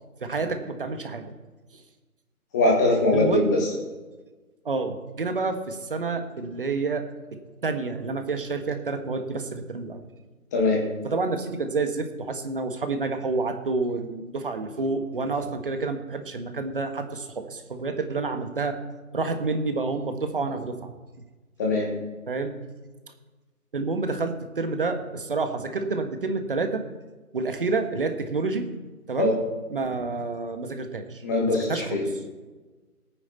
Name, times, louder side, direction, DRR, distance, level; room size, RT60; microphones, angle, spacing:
voice 1, 0.2-1.3 3.1-3.5 4.6-7.0 7.6-10.0 11.0-18.8 19.1-20.9 22.3-22.6 23.7-26.8 27.3-28.6 29.1-29.4 29.7-31.2 31.7-31.8, right 3 dB, 35° right, 7 dB, 1.4 m, -28 dB
voice 2, 2.5-3.6 10.5-10.8 21.6-21.9 29.2-29.3 31.2-32.0, left 2 dB, 10° left, -2 dB, 1.7 m, -21 dB
17.5 x 9.3 x 4.1 m, 1.3 s
figure-of-eight pair, 160°, 45 cm